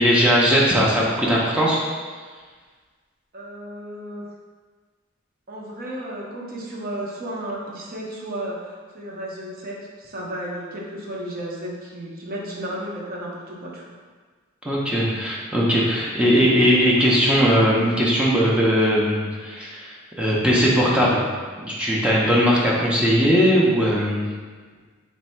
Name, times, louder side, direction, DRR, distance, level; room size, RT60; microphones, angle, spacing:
voice 1, 0.0-1.8 14.6-21.2 21.6-24.2, equal, 5° right, -6 dB, 0.5 m, -19 dB
voice 2, 3.3-4.2 5.5-13.9, right 1 dB, 45° right, -3 dB, 0.7 m, -33 dB
3.2 x 2.6 x 4.2 m, 1.5 s
head